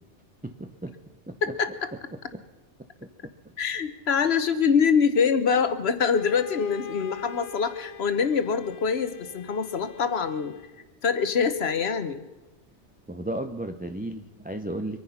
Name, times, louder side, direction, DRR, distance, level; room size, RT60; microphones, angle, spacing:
voice 1, 0.4-0.9 1.3-1.4 2.3-2.4 3.0-3.1 13.1-15.0, right 1 dB, 10° right, 6 dB, 0.5 m, -34 dB
voice 2, 1.4-1.9 3.6-10.5 11.0-12.2, left 6 dB, 65° left, 11 dB, 1.3 m, -24 dB
Bowed string instrument, 6.1-10.9, left 7 dB, 85° left, 1.1 m, -45 dB
24.5 x 9.8 x 5.7 m, 1.1 s
omnidirectional pair, 1.2 m